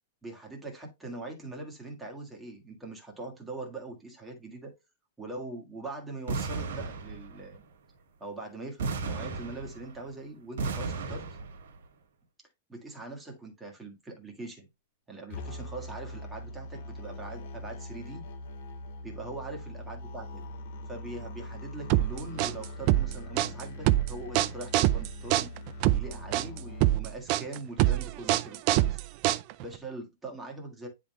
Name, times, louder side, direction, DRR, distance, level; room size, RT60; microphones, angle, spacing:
voice 1, 0.2-4.7 5.2-7.6 8.2-11.3 12.7-14.7 15.1-18.3 19.0-20.4 20.9-25.5 25.9-29.0 29.6-30.9, right 2 dB, 5° right, 1.6 m, -42 dB
sound 1, 6.3-7.5 8.8-10.1 10.6-11.7, right 4 dB, 75° right, 1.8 m, -34 dB
sound 2, 15.3-27.0, left 1 dB, 50° left, 1.8 m, -42 dB
sound 3, 21.9-29.8, right 15 dB, 30° right, 0.3 m, -25 dB
9.8 x 3.7 x 3.1 m
supercardioid pair, 175°, 0 cm